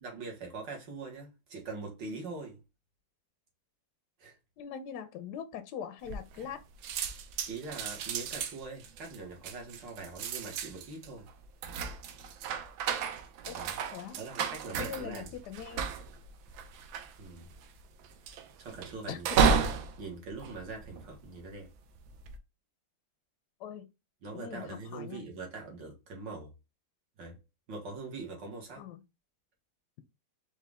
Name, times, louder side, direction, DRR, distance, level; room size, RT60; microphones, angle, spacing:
voice 1, 0.0-2.6 4.2-4.4 7.5-11.3 13.5-13.7 14.2-15.3 17.2-17.5 18.6-19.3 20.0-21.7 24.2-26.5 27.2-27.4 27.7-28.8, right 3 dB, 65° right, 2.1 m, -42 dB
voice 2, 4.6-6.6 13.5-13.6 13.9-14.5 14.8-15.9 19.1-19.4 23.6-23.9 24.3-25.2 28.8-29.0, left 8 dB, 70° left, 1.0 m, -42 dB
sound 1, 6.1-6.6 6.8-21.4 22.0-22.4, right 6 dB, 85° right, 1.4 m, -33 dB
4.8 x 2.5 x 3.4 m
omnidirectional pair, 2.1 m